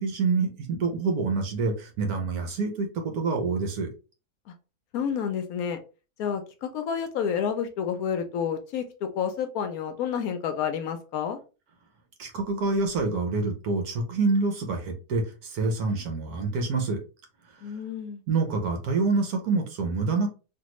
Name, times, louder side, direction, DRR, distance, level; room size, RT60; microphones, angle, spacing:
voice 1, 0.0-2.9 3.1-3.9 12.2-17.0 18.3-20.3, right 4 dB, 70° right, 4 dB, 1.3 m, -26 dB
voice 2, 4.9-5.8 6.2-11.4 17.6-18.2, left 7 dB, 70° left, 7 dB, 1.0 m, -29 dB
3.4 x 2.5 x 2.9 m, 0.33 s
omnidirectional pair, 1.7 m